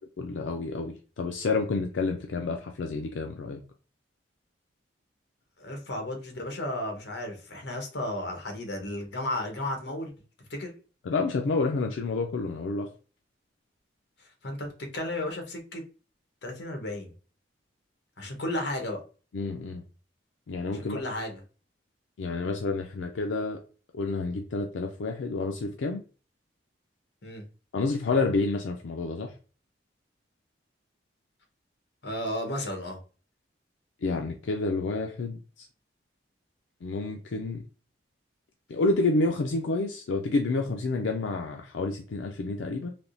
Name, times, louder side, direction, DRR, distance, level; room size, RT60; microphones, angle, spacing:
voice 1, 0.2-3.6 11.0-12.9 19.3-19.8 20.5-21.0 22.2-23.6 23.9-26.0 27.7-29.3 34.0-35.7 36.8-37.6 38.7-42.9, left 3 dB, 85° left, 0.4 m, -29 dB
voice 2, 5.6-10.1 10.5-10.7 14.4-15.8 16.4-17.1 18.2-19.0 20.7-21.4 27.2-27.5 32.0-33.0, left 1 dB, 65° left, 1.0 m, -33 dB
3.4 x 2.7 x 2.6 m
head